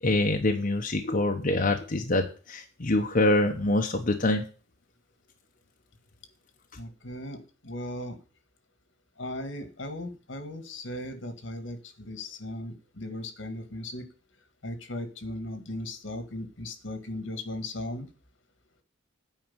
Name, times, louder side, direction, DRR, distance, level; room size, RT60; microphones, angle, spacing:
voice 1, 0.0-4.4, left 2 dB, 45° left, 3 dB, 1.1 m, -25 dB
voice 2, 6.8-8.2 9.2-14.1 14.6-18.1, left 1 dB, 75° left, 9 dB, 1.9 m, -37 dB
9.0 x 5.1 x 7.9 m, 0.37 s
head